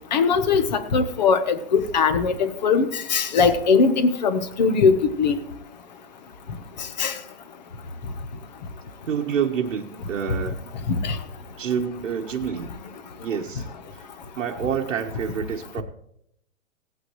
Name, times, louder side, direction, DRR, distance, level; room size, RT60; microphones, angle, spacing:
voice 1, 0.1-5.4 7.0-7.2 10.9-11.2, left 5 dB, 30° left, 11 dB, 0.9 m, -20 dB
voice 2, 9.1-10.6 11.6-12.7 13.2-13.7 13.9-14.1 14.3-15.8, right 7 dB, 65° right, 0 dB, 1.2 m, -27 dB
18.0 x 8.8 x 3.0 m, 0.73 s
hypercardioid pair, 175°, 42 cm